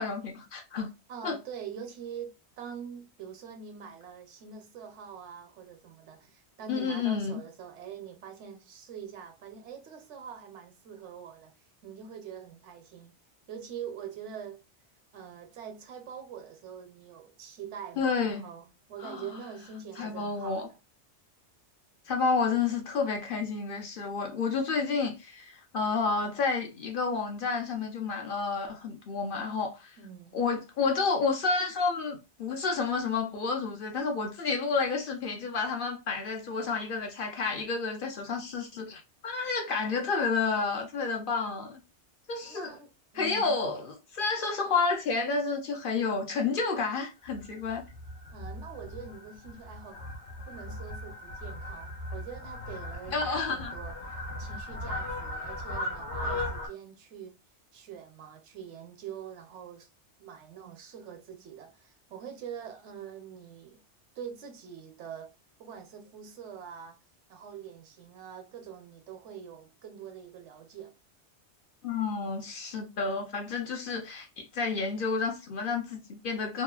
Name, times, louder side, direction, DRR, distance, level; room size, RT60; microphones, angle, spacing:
voice 1, 0.0-0.9 1.2-1.4 6.7-7.4 18.0-18.4 19.0-19.3 20.0-20.7 22.1-30.0 30.3-41.8 42.3-42.8 43.1-47.8 53.1-53.7 71.8-76.6, left 4 dB, 60° left, 0.7 m, -30 dB
voice 2, 1.1-11.5 11.8-13.1 13.5-14.6 15.1-20.8 30.0-30.5 42.4-43.5 48.3-50.0 50.5-54.0 54.4-57.4 57.7-59.9 60.2-63.8 64.2-65.3 65.6-67.0 67.3-70.9, right 7 dB, 85° right, 1.0 m, -44 dB
Fowl, 47.2-56.7, left 1 dB, 80° left, 1.3 m, -38 dB
2.9 x 2.3 x 2.3 m
omnidirectional pair, 1.2 m